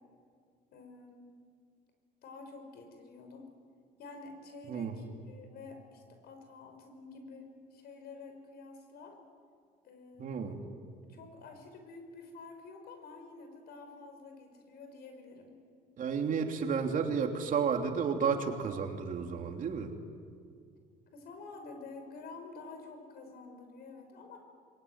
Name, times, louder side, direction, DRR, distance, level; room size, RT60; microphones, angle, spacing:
voice 1, 0.7-1.3 2.2-3.5 4.0-9.2 9.8-10.4 11.1-15.6 21.1-24.4, left 3 dB, 70° left, 5 dB, 5.9 m, -49 dB
voice 2, 10.2-10.6 16.0-19.9, right 6 dB, 50° right, 4 dB, 3.1 m, -32 dB
26.5 x 22.5 x 9.7 m, 2.2 s
cardioid pair, 110°, 17 cm